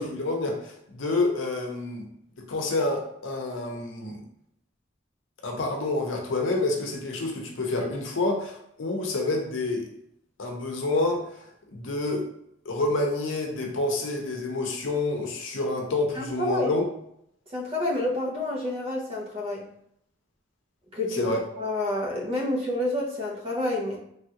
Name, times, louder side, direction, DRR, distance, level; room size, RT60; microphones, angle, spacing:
voice 1, 0.0-2.1 2.5-4.2 5.4-9.9 10.4-11.4 11.7-12.3 12.7-16.8 21.1-21.4, left 2 dB, 85° left, 2 dB, 0.6 m, -28 dB
voice 2, 16.2-16.7 17.5-19.7 20.9-24.0, left 1 dB, 30° right, -2 dB, 0.6 m, -29 dB
3.3 x 2.3 x 2.8 m, 0.73 s
head